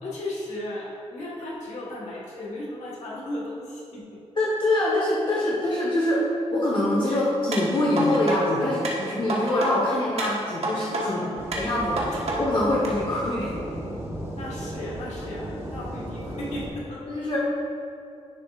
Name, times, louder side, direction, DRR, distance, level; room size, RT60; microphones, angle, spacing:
voice 1, 0.0-4.2 7.0-7.2 11.0-11.5 14.3-17.1, left 1 dB, 75° left, -5 dB, 1.6 m, -36 dB
voice 2, 4.4-6.3 6.5-11.2 11.5-13.5 17.1-17.4, left 1 dB, 45° left, -5 dB, 1.1 m, -24 dB
sound 1, 7.5-8.4 8.8-9.7 10.2-11.0 11.5-12.4 12.8-12.9, right 2 dB, 60° right, 1.4 m, -29 dB
sound 2, 11.4-16.7, right 1 dB, 25° right, 1.4 m, -35 dB
10.5 x 6.7 x 2.5 m, 2.6 s
wide cardioid pair, 125°, 12 cm